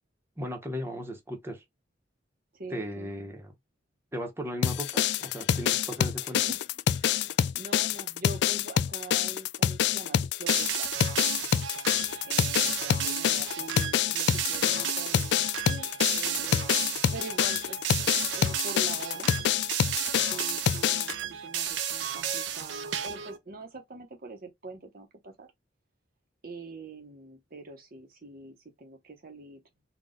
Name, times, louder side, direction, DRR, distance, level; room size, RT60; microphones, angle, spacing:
voice 1, 0.4-1.6 2.7-3.5 4.1-6.4, equal, 15° right, 1.0 m, -36 dB
voice 2, 2.5-3.1 6.2-10.9 12.3-16.8 17.1-19.4 20.3-21.2 21.4-25.5 26.4-29.6, right 2 dB, 50° right, 0.8 m, -44 dB
sound 1, 4.6-21.1, left 9 dB, 65° left, 0.3 m, -27 dB
sound 2, 10.5-23.4, right 9 dB, 80° right, 0.7 m, -33 dB
4.0 x 2.3 x 3.7 m
head